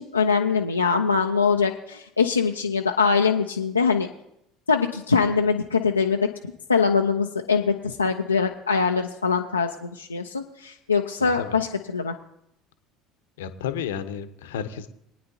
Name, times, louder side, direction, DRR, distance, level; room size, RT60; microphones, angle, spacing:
voice 1, 0.0-4.1 4.7-6.3 6.7-12.2, left 5 dB, 85° left, 1 dB, 0.5 m, -23 dB
voice 2, 11.2-11.6 13.4-14.9, left 8 dB, 70° left, 11 dB, 0.9 m, -32 dB
23.0 x 9.5 x 2.7 m, 0.78 s
figure-of-eight pair, 65°, 0 cm